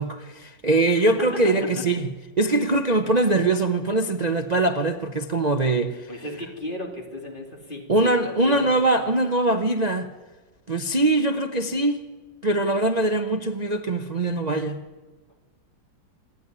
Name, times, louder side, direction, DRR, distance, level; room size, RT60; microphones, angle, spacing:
voice 1, 0.0-2.1 2.4-6.1 7.9-10.1 10.7-12.0 12.4-14.8, right 2 dB, 40° right, 6 dB, 0.6 m, -22 dB
voice 2, 1.1-1.8 6.1-8.7, left 1 dB, 25° left, 2 dB, 3.3 m, -34 dB
26.5 x 11.0 x 9.7 m, 1.3 s
omnidirectional pair, 2.1 m